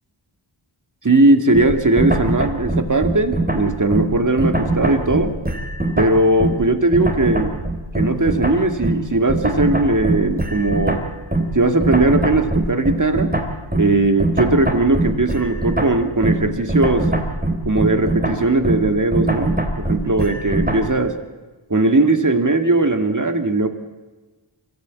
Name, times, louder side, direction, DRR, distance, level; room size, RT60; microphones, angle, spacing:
voice 1, 1.0-5.4 6.0-7.6 7.9-11.0 11.5-13.3 13.7-17.1 17.7-21.2 21.7-23.7, right 2 dB, 35° right, 6 dB, 2.1 m, -18 dB
sound 1, 1.5-6.7 6.9-20.9, right 1 dB, 20° right, 3.6 m, -22 dB
24.0 x 14.5 x 8.4 m, 1.2 s
cardioid pair, 40°, 50 cm